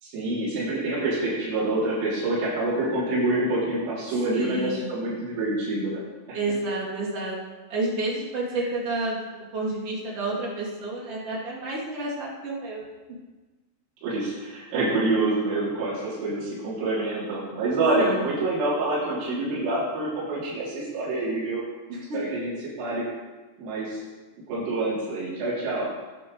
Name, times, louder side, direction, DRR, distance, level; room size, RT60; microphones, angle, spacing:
voice 1, 0.0-6.0 6.3-6.4 14.0-21.6 22.1-22.5 22.8-23.1 23.6-24.0 24.5-25.9, right 2 dB, 85° right, -8 dB, 6.0 m, -26 dB
voice 2, 4.3-4.9 6.3-7.4 7.7-9.2 9.5-12.8 18.0-18.3 21.9-22.2, right 2 dB, 35° right, -6 dB, 3.2 m, -30 dB
19.5 x 9.7 x 3.2 m, 1.2 s
omnidirectional pair, 5.9 m